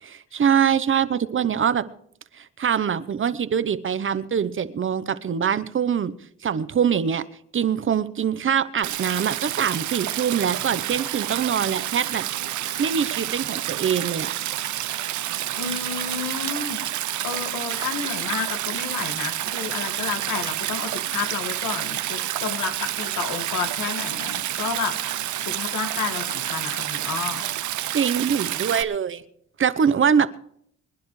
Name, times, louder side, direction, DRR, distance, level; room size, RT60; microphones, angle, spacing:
voice 1, 0.0-1.9 2.3-6.1 6.4-7.2 7.5-12.2 12.8-14.3 27.9-29.2 29.6-30.4, right 7 dB, 40° right, 14 dB, 0.9 m, -23 dB
Stream, 8.8-28.8, right 13 dB, 70° right, 0.8 m, -29 dB
voice 2, 15.5-16.8 17.2-27.4, left 6 dB, 75° left, 7 dB, 2.2 m, -31 dB
24.5 x 10.5 x 3.3 m, 0.66 s
cardioid pair, 90°, 30 cm